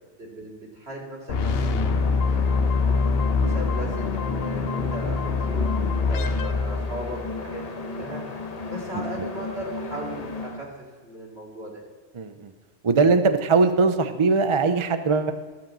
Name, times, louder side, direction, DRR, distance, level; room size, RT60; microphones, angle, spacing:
voice 1, 0.2-3.1 3.4-8.2 8.7-10.7 11.0-11.7, right 1 dB, 60° right, -2 dB, 2.6 m, -37 dB
sound 1, 1.3-7.4, left 4 dB, 60° left, 0.8 m, -24 dB
sound 2, 1.3-10.6, left 3 dB, 35° left, 1.0 m, -34 dB
voice 2, 12.1-12.5 12.8-15.3, right 4 dB, 40° right, 9 dB, 0.4 m, -21 dB
14.0 x 5.2 x 7.3 m, 1.4 s
omnidirectional pair, 1.2 m